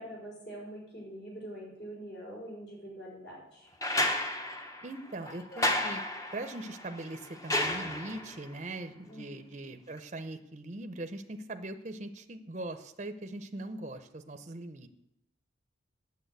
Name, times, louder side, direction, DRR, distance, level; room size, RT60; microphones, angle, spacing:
voice 1, 0.0-3.7 9.1-9.5, right 1 dB, 60° left, -5 dB, 5.3 m, -44 dB
sound 1, 3.8-8.4 10.0-10.1, left 1 dB, 15° left, 0.8 m, -32 dB
voice 2, 4.8-6.0 6.3-14.9, right 2 dB, 35° right, 8 dB, 0.7 m, -41 dB
8.9 x 7.1 x 8.1 m, 0.83 s
head